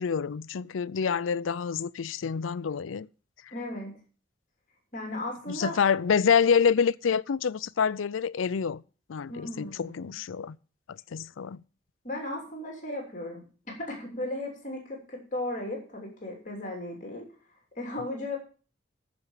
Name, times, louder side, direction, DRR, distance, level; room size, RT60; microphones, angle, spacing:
voice 1, 0.0-3.1 3.4-3.5 5.5-8.8 9.1-10.6 10.9-11.6, left 6 dB, 85° left, 0.4 m, -27 dB
voice 2, 3.5-4.0 4.9-5.8 9.3-10.1 12.0-13.4 13.8-17.2 17.7-18.4, left 1 dB, 40° left, 3.1 m, -36 dB
13.5 x 5.3 x 7.3 m
head